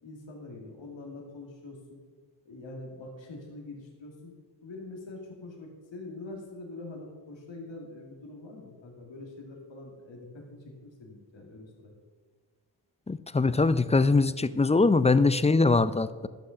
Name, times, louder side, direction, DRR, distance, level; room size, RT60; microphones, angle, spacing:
voice 1, 0.0-2.0 2.5-4.3 4.6-12.0, left 2 dB, 85° left, 0 dB, 2.2 m, -44 dB
voice 2, 13.1-16.3, left 3 dB, 15° left, 15 dB, 0.4 m, -22 dB
11.5 x 6.4 x 5.6 m, 1.5 s
cardioid pair, 60°, 44 cm